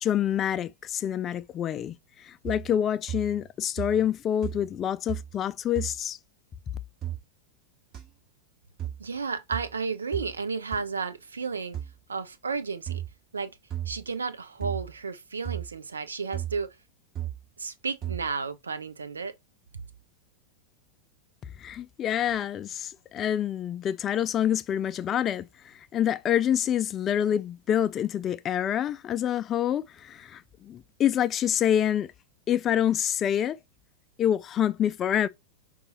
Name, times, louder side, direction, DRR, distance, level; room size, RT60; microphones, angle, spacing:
voice 1, 0.0-6.2 21.6-32.1 32.5-33.6 34.2-35.3, left 10 dB, 30° left, 0.3 m, -27 dB
sound 1, 2.4-2.8 3.1-3.5 3.8-4.2 4.4-4.8 5.1-5.4 5.7-6.0 7.0-7.2 7.9-8.0 8.8-9.0 9.5-9.7 10.1-10.3 10.7-10.8 11.7-11.9 12.9-13.1 13.7-14.0 14.6-14.9 15.4-15.7 16.3-16.6 17.1-17.4 18.0-18.3, right 11 dB, 30° right, 1.8 m, -34 dB
voice 2, 9.0-11.8 12.1-13.0 13.3-13.5 13.9-16.8 17.6-19.3, right 5 dB, 75° right, 0.6 m, -32 dB
5.3 x 2.3 x 4.1 m
figure-of-eight pair, 90°, 0 cm